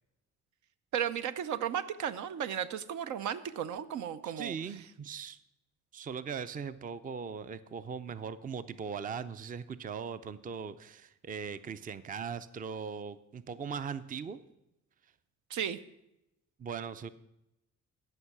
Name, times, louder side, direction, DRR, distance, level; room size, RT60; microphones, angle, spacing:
voice 1, 0.9-4.5 15.5-15.8, right 9 dB, 75° right, 11 dB, 0.7 m, -34 dB
voice 2, 4.2-5.4 5.9-14.4 16.6-17.1, right 6 dB, 30° right, 14 dB, 0.5 m, -39 dB
15.0 x 5.5 x 5.9 m, 0.87 s
cardioid pair, 90°, 30 cm